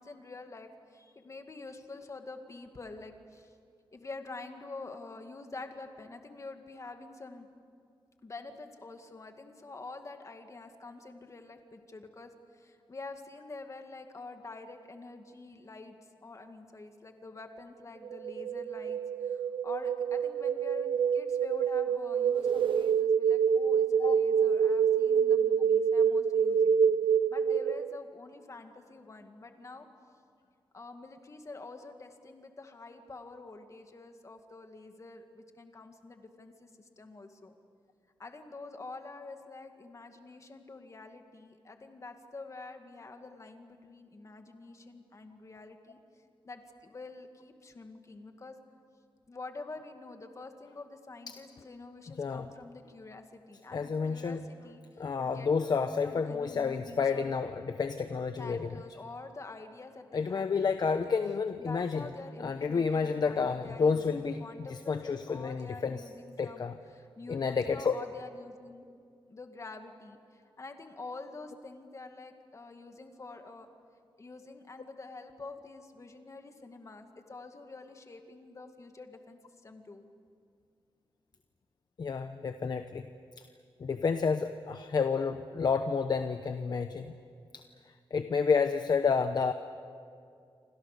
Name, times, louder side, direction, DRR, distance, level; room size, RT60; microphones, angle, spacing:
voice 1, 0.0-3.5 3.9-7.5 8.2-16.0 16.2-26.8 27.3-29.9 30.7-37.5 38.2-46.0 46.4-48.6 49.3-57.4 58.4-61.2 61.6-66.7 66.9-68.9 69.3-73.7 74.2-80.0, left 3 dB, 35° left, 5 dB, 2.3 m, -47 dB
sound 1, 18.0-28.0, right 7 dB, 65° right, 0.6 m, -27 dB
voice 2, 53.7-54.4 55.0-58.7 60.1-62.1 62.4-64.4 64.9-66.0 66.4-66.8 67.3-67.9 82.0-83.1 83.8-87.1 87.5-87.6 88.1-89.5, left 5 dB, 50° left, 8 dB, 0.9 m, -30 dB
29.0 x 25.5 x 6.8 m, 2.3 s
wide cardioid pair, 130°, 9 cm